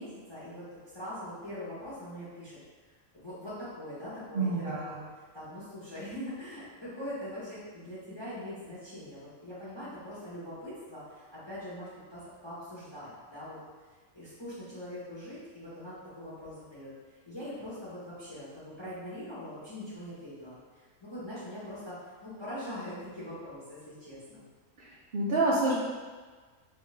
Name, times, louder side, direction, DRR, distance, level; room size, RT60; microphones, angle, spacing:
voice 1, 0.0-2.6 3.1-5.0 5.3-13.6 14.1-16.9 17.2-22.0 22.2-24.5, left 1 dB, 20° left, -10 dB, 1.0 m, -42 dB
voice 2, 4.3-4.9 24.8-24.9 25.1-25.7, right 2 dB, 55° right, -7 dB, 0.7 m, -27 dB
3.5 x 3.4 x 3.3 m, 1.4 s
omnidirectional pair, 1.4 m